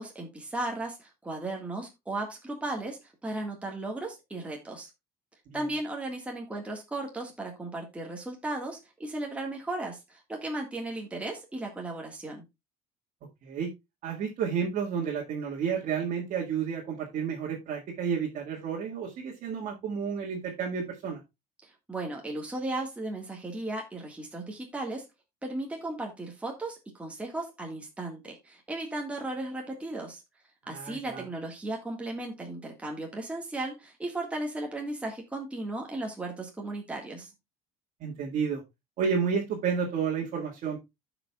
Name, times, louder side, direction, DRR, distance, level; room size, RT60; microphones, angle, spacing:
voice 1, 0.0-4.9 5.5-12.4 21.6-25.1 25.4-30.2 30.7-37.3, right 2 dB, 10° right, 0 dB, 1.6 m, -36 dB
voice 2, 13.4-13.7 14.0-21.2 30.7-31.3 38.0-38.6 39.0-40.8, right 6 dB, 55° right, -2 dB, 1.8 m, -31 dB
15.0 x 5.1 x 2.3 m, 0.21 s
cardioid pair, 125°, 16 cm